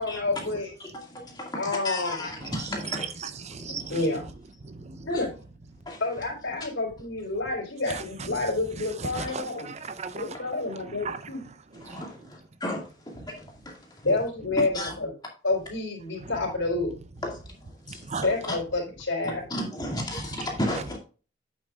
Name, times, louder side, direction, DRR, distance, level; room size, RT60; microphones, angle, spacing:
voice 1, 0.0-0.7 1.6-2.3 3.7-4.3 5.0-5.3 6.0-9.7 10.2-11.4 14.0-15.1 15.4-16.9 18.2-19.4, left 2 dB, 85° left, 3.8 m, -29 dB
voice 2, 0.8-4.1 5.1-5.2 5.9-6.2 6.6-6.7 11.7-14.1 14.7-15.0 17.2-18.6 19.5-21.0, left 1 dB, 20° left, 2.1 m, -35 dB
voice 3, 3.4-4.0 4.6-5.1 7.9-8.4 9.1-10.3 10.7-11.2 11.9-12.0 16.2-16.3 17.9-18.3, right 4 dB, 35° right, 0.6 m, -37 dB
8.6 x 7.4 x 2.4 m
head